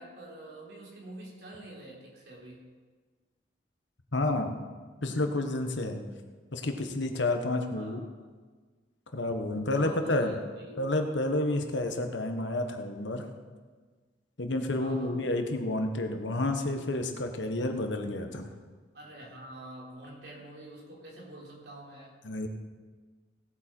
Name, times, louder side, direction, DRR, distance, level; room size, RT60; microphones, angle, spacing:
voice 1, 0.0-2.6 7.7-8.1 9.8-10.8 14.8-15.2 18.9-22.2, right 1 dB, 70° right, -3 dB, 3.5 m, -46 dB
voice 2, 4.1-4.5 5.0-6.0 6.5-8.0 9.1-10.3 10.8-13.3 14.4-18.5 22.2-22.5, left 2 dB, 85° left, 5 dB, 1.3 m, -30 dB
17.5 x 8.5 x 4.5 m, 1.4 s
head